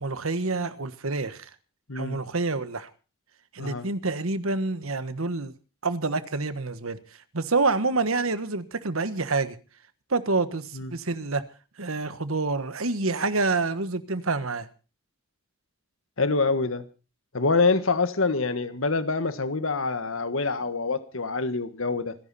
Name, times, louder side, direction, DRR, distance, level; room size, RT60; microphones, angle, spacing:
voice 1, 0.0-1.5 1.9-2.9 3.5-5.5 5.8-7.0 7.3-9.5 10.1-11.4 11.8-14.7, right 3 dB, 90° right, 1.4 m, -27 dB
voice 2, 1.9-2.2 3.6-3.9 10.7-10.9 16.2-16.8 17.3-22.1, left 3 dB, 80° left, 1.5 m, -26 dB
26.5 x 11.0 x 4.2 m
head